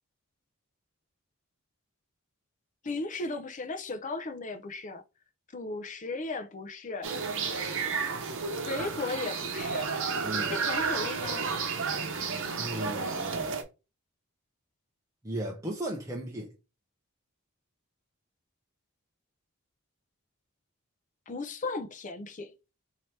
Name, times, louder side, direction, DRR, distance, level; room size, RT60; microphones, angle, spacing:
voice 1, 2.8-5.0 5.5-7.1 8.7-9.9 10.5-11.5 21.3-22.5, left 3 dB, 35° left, 0.6 m, -36 dB
sound 1, 7.0-13.6, right 5 dB, 65° right, 0.9 m, -32 dB
voice 2, 10.2-10.6 12.6-13.6 15.2-16.5, right 1 dB, 15° right, 0.7 m, -36 dB
4.6 x 2.8 x 3.2 m
head